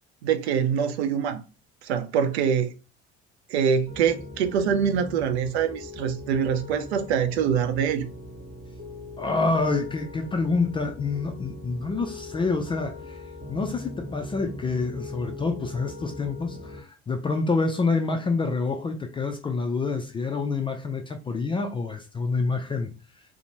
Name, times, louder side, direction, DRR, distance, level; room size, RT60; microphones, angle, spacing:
voice 1, 0.2-1.4 1.8-2.7 3.5-8.1, right 7 dB, 70° right, 0.5 m, -24 dB
Piano, 3.9-16.8, left 2 dB, 25° right, 0.8 m, -40 dB
voice 2, 9.2-13.2 13.5-22.9, left 3 dB, 15° left, 0.3 m, -27 dB
2.5 x 2.1 x 2.8 m
figure-of-eight pair, 55°, 33 cm